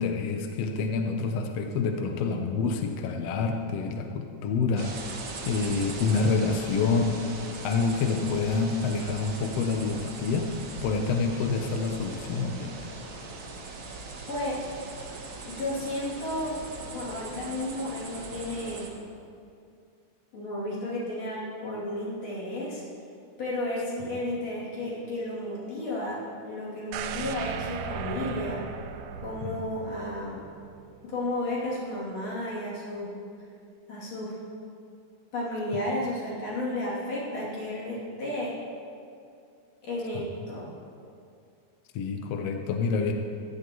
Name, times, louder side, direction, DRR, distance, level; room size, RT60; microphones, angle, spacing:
voice 1, 0.0-4.9 5.4-7.2 7.6-10.5 10.8-12.8 29.4-29.6 40.1-40.3 41.9-43.1, left 4 dB, 75° left, 4 dB, 1.5 m, -27 dB
sound 1, 4.8-18.9, right 3 dB, 55° right, 1.3 m, -40 dB
voice 2, 14.3-14.6 15.5-16.6 16.8-18.9 20.3-22.8 23.4-28.6 29.2-30.4 31.0-33.1 33.9-34.4 35.3-38.5 39.8-40.7, left 1 dB, 55° left, -7 dB, 3.8 m, -33 dB
sound 2, 26.9-30.9 31.3-31.4, right 8 dB, 85° right, 1.5 m, -37 dB
15.5 x 11.5 x 3.0 m, 2.4 s
omnidirectional pair, 3.6 m